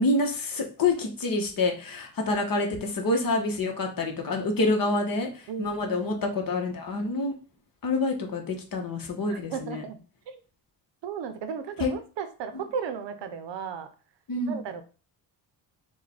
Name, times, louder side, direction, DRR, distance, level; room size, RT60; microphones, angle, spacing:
voice 1, 0.0-7.3 7.8-9.8 11.8-11.9 14.3-14.6, left 2 dB, 50° left, 3 dB, 1.2 m, -27 dB
voice 2, 5.5-6.2 9.3-10.0 10.3-10.4 11.0-13.9 14.5-14.8, right 7 dB, 85° right, 9 dB, 0.8 m, -35 dB
4.7 x 2.4 x 4.3 m, 0.35 s
cardioid pair, 120°, 43 cm